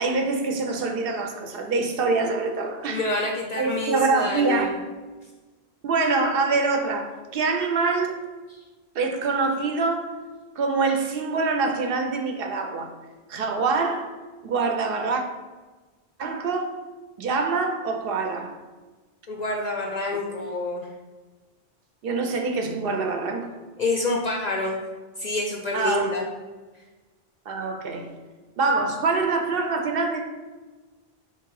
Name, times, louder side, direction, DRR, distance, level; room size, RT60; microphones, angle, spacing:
voice 1, 0.0-3.0 3.6-4.8 5.8-8.2 8.9-10.1 10.6-12.9 13.3-14.1 14.4-15.2 16.2-16.8 17.2-18.6 22.0-23.5 25.7-26.1 27.5-28.1 28.6-30.2, right 3 dB, 65° right, 4 dB, 0.7 m, -25 dB
voice 2, 2.9-4.7 19.3-20.9 23.8-24.8 25.2-26.3, left 2 dB, 55° left, 0 dB, 0.5 m, -27 dB
3.6 x 3.0 x 4.6 m, 1.3 s
omnidirectional pair, 1.1 m